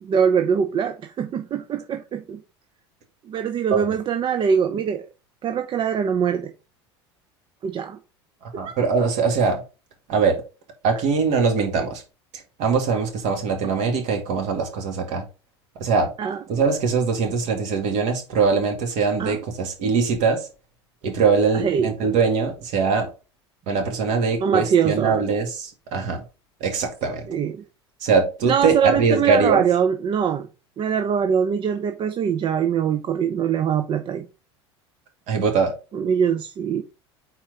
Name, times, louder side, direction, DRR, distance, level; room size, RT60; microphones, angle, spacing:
voice 1, 0.0-2.4 3.3-5.0 5.4-6.5 7.6-8.0 8.5-8.8 16.2-16.4 19.2-19.4 21.5-21.9 24.4-25.1 27.3-27.6 28.4-30.5 30.8-34.3 35.9-36.8, right 7 dB, 35° right, 0.6 m, -23 dB
voice 2, 8.6-9.6 10.1-10.4 10.8-12.0 12.6-15.2 15.8-16.1 16.5-20.4 21.0-23.1 23.7-26.2 26.6-27.3 28.0-29.6 35.3-35.7, right 5 dB, 55° right, 2.3 m, -22 dB
4.4 x 4.3 x 5.1 m
hypercardioid pair, 80°, 14 cm